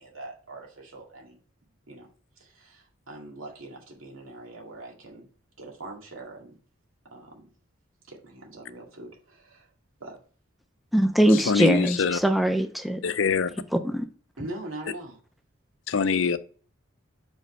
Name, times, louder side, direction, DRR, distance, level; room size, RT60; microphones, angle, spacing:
voice 1, 0.0-1.4 1.9-2.1 2.4-5.3 5.6-6.6 7.1-7.5 8.1-9.7 10.0-10.2 14.4-15.2, right 2 dB, 90° right, 2.1 m, -42 dB
voice 2, 10.9-13.0 13.8-14.1, right 1 dB, ahead, 0.5 m, -22 dB
voice 3, 11.5-12.2 13.0-13.5 15.9-16.4, left 5 dB, 70° left, 0.5 m, -24 dB
5.3 x 5.2 x 5.4 m
head